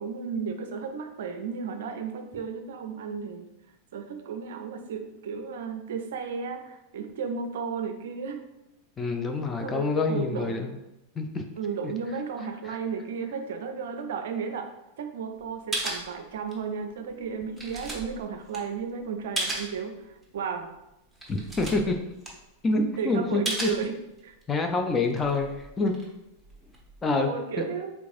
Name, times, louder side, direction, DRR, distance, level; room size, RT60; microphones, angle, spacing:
voice 1, 0.0-3.5 3.9-8.5 9.6-10.7 11.6-20.7 23.0-24.3 27.2-27.9, right 6 dB, 60° right, 6 dB, 0.4 m, -34 dB
voice 2, 9.0-10.8 11.2-11.5 11.8-11.9 12.6-12.8 21.3-21.9 22.6-23.7 24.5-25.9 27.0-27.3 27.6-27.7, left 3 dB, 15° left, 4 dB, 0.5 m, -27 dB
sound 1, 15.4-15.5 15.7-16.7 17.1-19.8 20.2-20.3 20.8-20.9 21.1-22.9 23.4-24.4 24.9-27.1, right 1 dB, 5° right, 1.0 m, -35 dB
4.7 x 3.4 x 2.5 m, 0.93 s
figure-of-eight pair, 90°, 0 cm